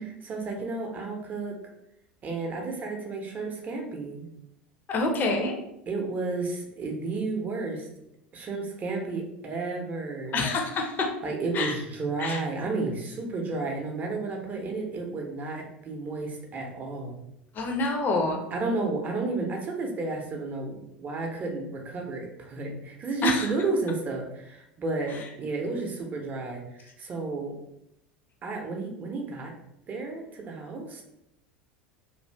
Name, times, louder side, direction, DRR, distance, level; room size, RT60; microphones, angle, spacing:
voice 1, 0.2-1.6 2.2-4.3 5.9-7.9 8.3-10.5 11.2-17.2 18.5-27.6 28.4-29.5 29.9-31.0, right 3 dB, 30° right, 2 dB, 0.7 m, -32 dB
voice 2, 4.9-5.5 10.3-11.1 11.5-11.7 12.2-12.4 17.5-18.4 23.2-23.5, left 2 dB, 35° left, 2 dB, 0.7 m, -26 dB
2.6 x 2.5 x 3.3 m, 0.80 s
figure-of-eight pair, 75°, 6 cm